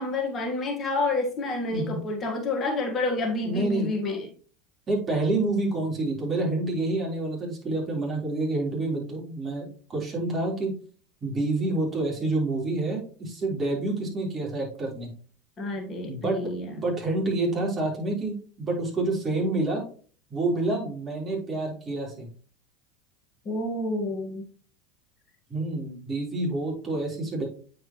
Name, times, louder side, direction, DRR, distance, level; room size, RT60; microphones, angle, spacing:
voice 1, 0.0-4.3 15.6-16.7 23.4-24.5, left 2 dB, 35° left, 2 dB, 1.6 m, -29 dB
voice 2, 3.4-3.9 4.9-10.7 11.2-15.1 16.1-16.4 16.8-19.8 20.3-22.3 25.5-27.5, right 2 dB, 30° right, -2 dB, 3.9 m, -28 dB
8.9 x 4.9 x 3.1 m, 0.42 s
hypercardioid pair, 90°, 0 cm